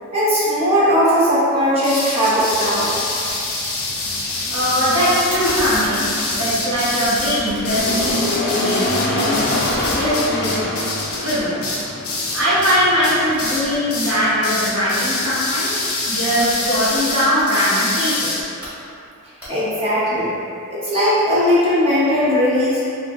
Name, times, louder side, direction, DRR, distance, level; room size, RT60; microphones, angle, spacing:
voice 1, 0.1-2.9 19.5-20.3 20.7-22.8, equal, 25° right, -10 dB, 0.9 m, -18 dB
sound 1, 1.8-12.8 13.0-13.6 13.9-14.2 14.4-18.4, left 2 dB, 70° left, 0.7 m, -25 dB
sound 2, 2.4-16.8, left 2 dB, 45° left, 0.4 m, -28 dB
sound 3, 3.3-3.4 3.7-4.5 5.3-8.4 8.7-12.0 12.4-14.6 16.2-17.5 18.4-18.7 19.4-19.9, equal, 10° right, 1.3 m, -34 dB
voice 2, 4.5-6.1 6.4-8.8 9.0-10.6 11.2-11.8 12.3-18.5, equal, 80° right, -12 dB, 1.5 m, -21 dB
2.9 x 2.5 x 3.6 m, 2.5 s
head